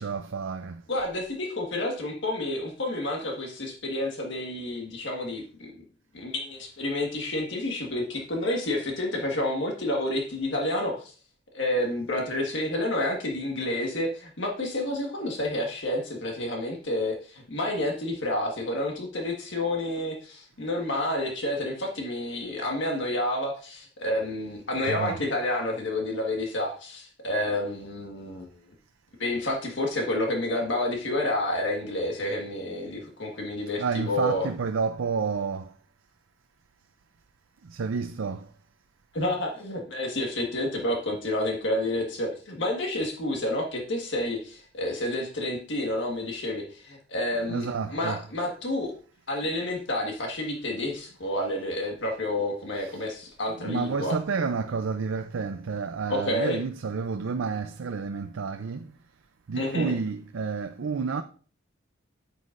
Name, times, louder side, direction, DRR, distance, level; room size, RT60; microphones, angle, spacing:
voice 1, 0.0-0.8 24.9-25.2 33.8-35.7 37.7-38.4 47.5-48.1 53.7-58.8 59.5-61.2, right 5 dB, 85° right, 0.5 m, -30 dB
voice 2, 0.9-5.7 6.1-11.1 11.5-28.5 29.2-34.5 39.1-48.9 49.3-54.2 56.1-56.6 59.5-59.9, left 1 dB, 65° left, 1.5 m, -29 dB
9.4 x 8.1 x 2.5 m
head